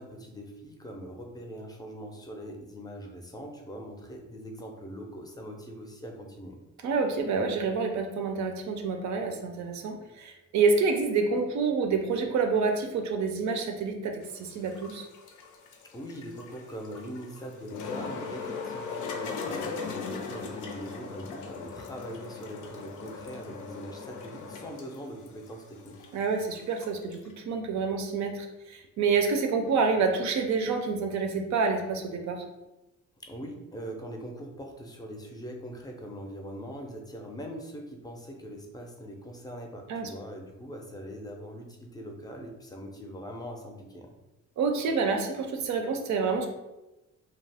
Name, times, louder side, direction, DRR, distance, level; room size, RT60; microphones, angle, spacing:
voice 1, 0.0-6.6 15.9-26.1 33.2-44.1, equal, 15° left, 2 dB, 0.5 m, -42 dB
voice 2, 6.8-15.1 26.1-32.4 39.9-40.1 44.6-46.5, right 4 dB, 70° right, 4 dB, 0.5 m, -28 dB
sound 1, 14.2-27.3, left 5 dB, 85° left, 0.5 m, -39 dB
2.3 x 2.0 x 3.3 m, 0.99 s
cardioid pair, 95°, 30 cm